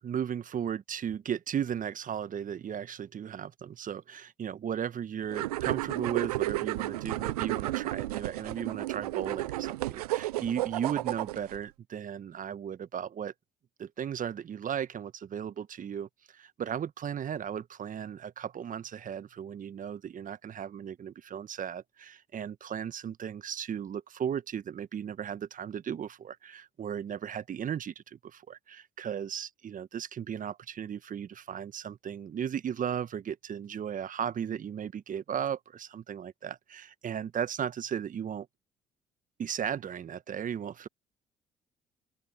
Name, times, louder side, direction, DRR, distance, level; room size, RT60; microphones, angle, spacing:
voice 1, 0.0-13.3 13.8-38.5 39.4-40.9, right 8 dB, 45° right, 1.4 m, -36 dB
sound 1, 5.3-11.6, right 17 dB, 85° right, 0.4 m, -32 dB
open air
hypercardioid pair, 50°, 19 cm